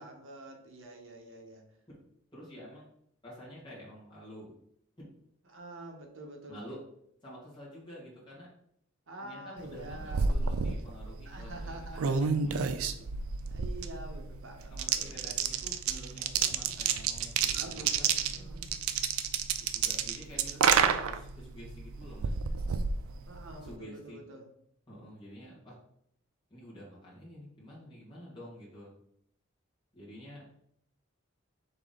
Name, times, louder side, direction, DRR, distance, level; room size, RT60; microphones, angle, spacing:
voice 1, 0.0-1.6 5.5-6.6 9.1-10.3 11.2-12.2 13.5-15.3 16.6-16.8 17.5-18.8 23.3-24.5, right 1 dB, 70° right, 2 dB, 1.0 m, -47 dB
voice 2, 2.3-2.9 3.2-4.5 5.0-5.1 6.5-6.8 7.2-8.5 9.2-13.1 14.7-18.6 19.7-22.4 23.6-24.2 24.9-25.8 26.5-28.9 29.9-30.5, equal, 20° left, -7 dB, 1.7 m, -49 dB
sound 1, 9.7-23.7, right 6 dB, 90° right, 0.4 m, -31 dB
4.0 x 3.6 x 3.7 m, 0.72 s
head